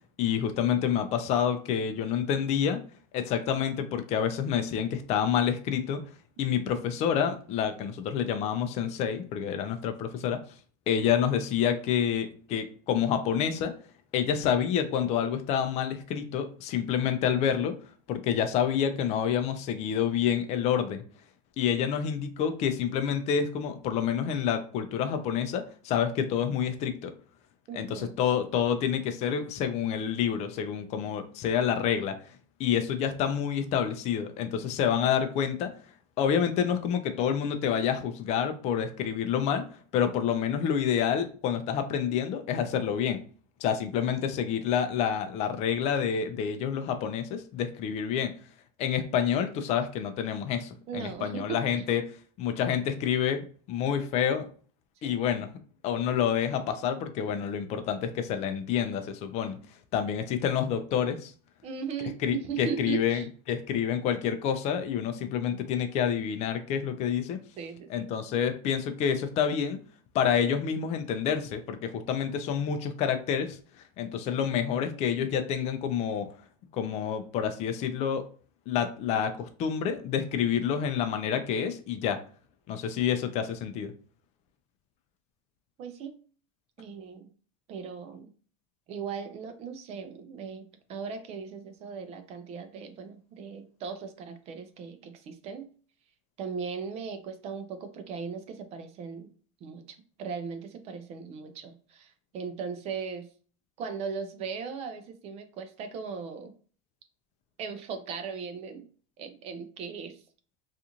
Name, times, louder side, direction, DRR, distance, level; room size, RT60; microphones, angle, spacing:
voice 1, 0.2-2.8 3.1-6.1 6.4-10.4 10.9-13.7 14.1-17.8 18.1-21.0 21.6-27.1 27.7-32.3 32.6-35.7 36.2-39.7 39.9-43.2 43.6-48.3 48.8-52.1 52.4-54.5 55.0-55.5 55.8-59.6 59.9-61.3 62.2-67.4 67.9-69.8 70.1-73.6 74.0-76.3 76.7-78.3 78.7-82.2 82.7-83.9, left 8 dB, 35° left, 7 dB, 0.4 m, -28 dB
voice 2, 27.7-28.2 50.9-51.8 55.0-55.2 61.6-63.3 67.6-68.1 85.8-86.2 86.8-87.3 87.7-88.3 88.9-95.7 96.4-99.3 99.6-99.9 100.2-103.3 103.8-106.5 107.6-108.9 109.2-110.2, right 6 dB, 35° right, 8 dB, 0.5 m, -38 dB
2.5 x 2.4 x 2.8 m, 0.42 s
supercardioid pair, 130°, 18 cm